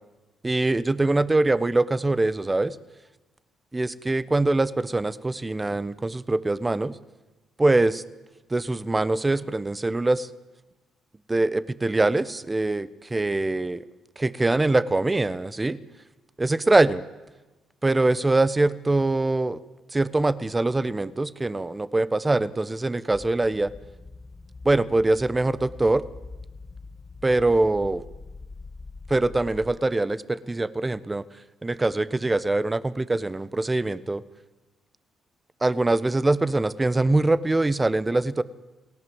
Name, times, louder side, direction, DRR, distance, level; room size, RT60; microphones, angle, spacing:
voice 1, 0.4-2.8 3.7-7.0 7.6-8.0 8.5-10.3 11.3-13.8 14.2-15.8 16.4-17.0 17.8-19.6 19.9-23.7 24.6-26.0 27.2-28.0 29.1-31.3 31.6-34.2 35.6-38.4, right 2 dB, 20° right, 16 dB, 1.1 m, -23 dB
sound 1, 23.1-29.8, left 3 dB, 30° left, 1.4 m, -43 dB
29.0 x 18.5 x 8.0 m, 1.1 s
cardioid pair, 90°, 0 cm